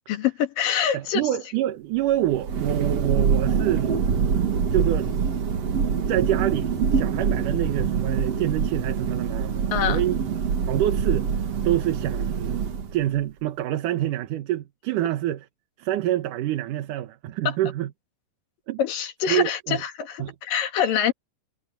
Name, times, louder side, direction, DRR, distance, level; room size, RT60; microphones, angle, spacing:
voice 1, 0.1-1.3 9.7-10.0 17.5-17.6 18.8-21.1, left 9 dB, 80° left, 3.8 m, -25 dB
voice 2, 0.9-3.9 4.7-5.1 6.1-10.2 10.7-11.3 11.6-15.5 15.8-17.9 18.7-18.8 19.3-19.8 20.2-20.3, right 13 dB, 70° right, 2.6 m, -26 dB
Thunder, 2.1-13.2, right 6 dB, 50° right, 3.0 m, -25 dB
omnidirectional pair, 3.9 m